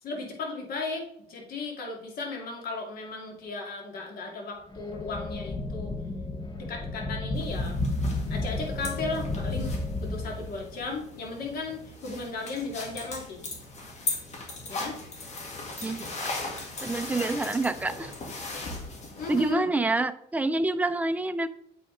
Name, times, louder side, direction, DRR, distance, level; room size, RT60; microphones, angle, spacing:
voice 1, 0.0-5.9 6.7-7.7 8.3-13.4 14.7-15.0 19.2-19.7, left 3 dB, 60° left, 0 dB, 2.1 m, -35 dB
sound 1, 4.7-10.9, left 2 dB, 25° left, 0.9 m, -32 dB
sound 2, 7.3-19.5, left 3 dB, 40° left, 1.8 m, -38 dB
voice 2, 15.8-16.3 16.8-18.1 19.3-21.5, right 2 dB, 10° right, 11 dB, 0.4 m, -27 dB
7.9 x 4.9 x 3.8 m, 0.72 s
cardioid pair, 110°, 17 cm